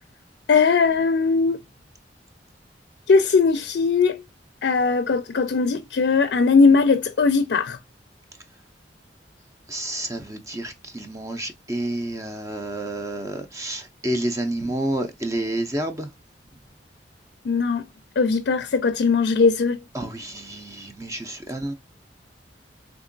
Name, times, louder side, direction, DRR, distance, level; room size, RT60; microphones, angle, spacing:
voice 1, 0.5-1.6 3.1-4.2 4.6-7.8 17.5-17.9 18.2-19.8, left 4 dB, 65° left, 0.4 m, -19 dB
voice 2, 9.7-16.1 19.9-21.7, right 1 dB, 20° right, 0.5 m, -29 dB
3.6 x 2.9 x 2.5 m
head